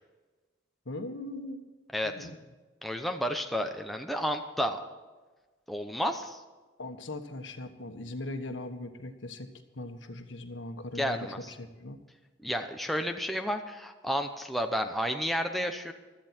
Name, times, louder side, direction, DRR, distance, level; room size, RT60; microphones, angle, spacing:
voice 1, 0.8-1.6 2.0-2.4 6.8-12.0, left 2 dB, 75° left, 7 dB, 1.4 m, -40 dB
voice 2, 1.9-2.3 2.8-4.8 5.7-6.4 11.0-11.5 12.4-15.9, equal, ahead, 4 dB, 0.8 m, -31 dB
16.5 x 12.5 x 4.5 m, 1.3 s
head